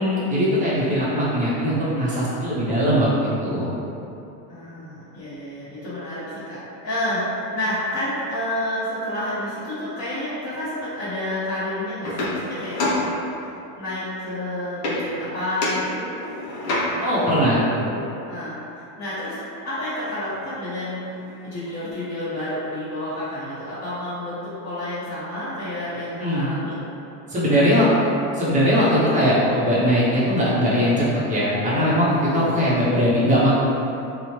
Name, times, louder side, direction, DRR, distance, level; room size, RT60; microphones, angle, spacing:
voice 1, 0.0-3.7 17.0-17.6 26.1-26.5 27.3-33.5, equal, 15° right, -8 dB, 0.5 m, -20 dB
voice 2, 4.5-13.0 13.7-16.1 16.9-19.4 19.6-26.8 27.6-27.7, left 1 dB, 35° left, -15 dB, 0.9 m, -30 dB
sound 1, 12.0-13.7 14.8-15.3 15.6-17.2 20.5-20.6 20.9-21.9, left 1 dB, 65° left, 0.7 m, -28 dB
2.9 x 2.1 x 2.8 m, 2.8 s
supercardioid pair, 130°, 49 cm